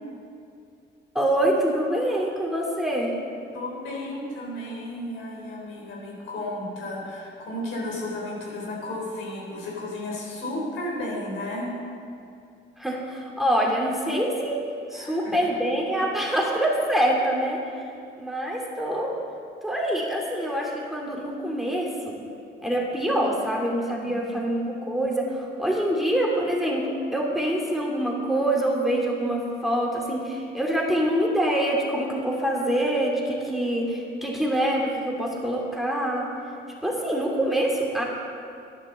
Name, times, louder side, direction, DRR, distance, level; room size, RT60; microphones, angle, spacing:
voice 1, 1.1-3.1 12.8-14.6 14.9-17.6 18.2-19.1 19.6-22.2 22.6-36.3 36.8-38.0, right 1 dB, ahead, -2 dB, 2.7 m, -25 dB
voice 2, 3.5-11.7 14.9-15.4 24.0-24.2, left 1 dB, 85° left, -2 dB, 3.9 m, -33 dB
11.0 x 11.0 x 6.7 m, 2.5 s
cardioid pair, 90°, 20 cm